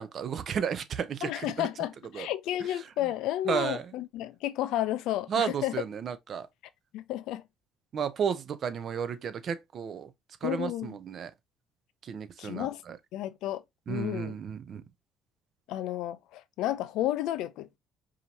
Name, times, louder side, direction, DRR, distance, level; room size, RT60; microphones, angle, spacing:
voice 1, 0.0-1.7 2.1-2.3 3.5-3.9 5.3-6.5 7.9-10.1 10.4-11.3 12.0-13.0 13.9-14.8, right 7 dB, 50° right, 0.6 m, -33 dB
voice 2, 1.2-5.8 6.9-7.4 10.4-11.0 12.4-12.8 13.1-13.6 13.9-14.4 15.7-17.8, left 13 dB, 80° left, 0.5 m, -32 dB
4.9 x 2.9 x 2.7 m
cardioid pair, 110°, 0 cm